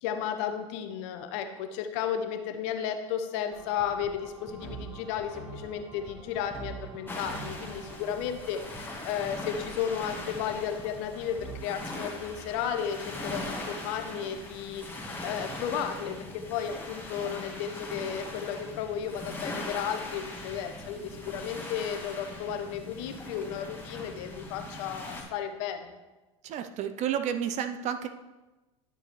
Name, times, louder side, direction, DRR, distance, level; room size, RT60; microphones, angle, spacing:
voice 1, 0.0-26.0, left 8 dB, 60° left, 7 dB, 1.0 m, -34 dB
sound 1, 3.5-11.6, right 2 dB, 5° right, 1.7 m, -45 dB
sound 2, 7.1-25.2, left 2 dB, 10° left, 1.7 m, -40 dB
voice 2, 26.4-28.1, right 9 dB, 45° right, 9 dB, 0.7 m, -31 dB
10.5 x 6.7 x 3.2 m, 1.1 s
hypercardioid pair, 85°, 17 cm